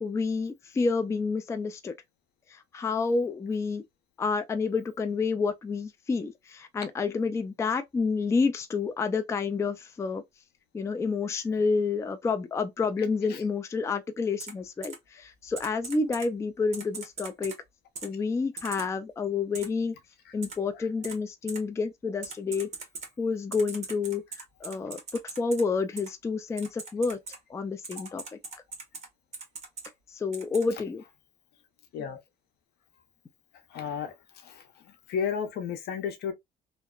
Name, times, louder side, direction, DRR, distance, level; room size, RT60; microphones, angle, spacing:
voice 1, 0.0-1.9 2.7-3.8 4.2-10.2 10.7-17.5 18.0-19.9 20.3-22.7 23.2-24.2 24.6-25.0 25.4-27.2 27.5-28.2 30.2-31.0, left 4 dB, 15° left, 0.3 m, -29 dB
Typing, 14.4-14.5 14.8-15.0 15.6-16.3 16.7-17.6 18.0-18.1 18.6-18.9 19.5-19.7 20.4-20.5 21.0-21.2 21.5-21.6 22.2-23.1 23.5-25.6 26.0-26.1 26.6-27.4 27.8-29.1 29.3-29.9 30.3-30.6, right 4 dB, 40° right, 1.1 m, -40 dB
voice 2, 33.7-34.1 34.4-34.6 35.1-36.3, left 7 dB, 75° left, 0.7 m, -32 dB
2.8 x 2.1 x 2.3 m
cardioid pair, 110°, 17 cm